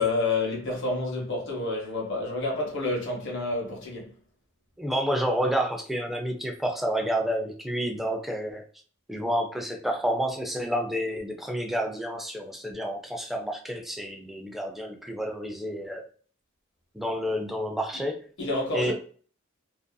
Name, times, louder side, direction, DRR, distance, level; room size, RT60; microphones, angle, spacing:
voice 1, 0.0-4.1 18.4-18.9, left 3 dB, 60° left, 1.0 m, -29 dB
voice 2, 4.8-8.6 9.1-16.0 16.9-18.3 18.7-18.9, equal, ahead, 0.4 m, -29 dB
2.6 x 2.4 x 2.2 m
head